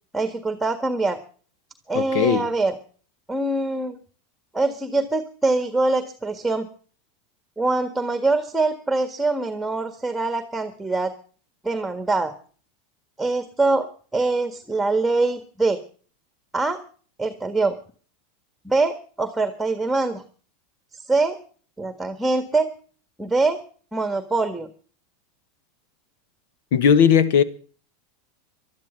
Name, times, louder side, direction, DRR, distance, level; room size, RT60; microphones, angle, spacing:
voice 1, 0.1-1.2 1.9-2.8 3.3-4.0 4.5-6.7 7.6-11.1 11.6-12.3 13.2-15.8 16.5-16.8 17.2-17.8 18.6-20.2 20.9-21.4 21.8-22.7 23.2-23.6 23.9-24.7, right 3 dB, 5° right, 1.6 m, -23 dB
voice 2, 1.9-2.5 26.7-27.4, left 7 dB, 70° left, 1.4 m, -17 dB
12.0 x 12.0 x 7.8 m
hypercardioid pair, 105°, 0 cm